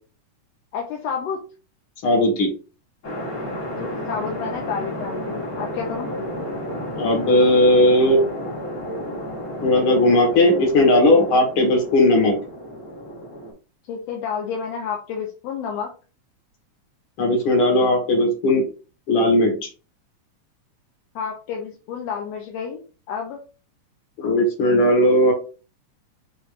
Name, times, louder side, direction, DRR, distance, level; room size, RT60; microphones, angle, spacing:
voice 1, 0.7-1.5 3.8-6.1 13.9-15.9 21.1-22.8 23.1-23.4, left 6 dB, 75° left, 1 dB, 1.6 m, -30 dB
voice 2, 2.0-2.5 7.0-8.2 9.6-12.4 17.2-18.6 19.1-19.5 24.2-25.3, left 1 dB, 50° left, 1 dB, 2.1 m, -17 dB
sound 1, 3.0-13.5, equal, 35° left, 1.8 m, -32 dB
6.3 x 3.2 x 2.5 m, 0.35 s
omnidirectional pair, 3.5 m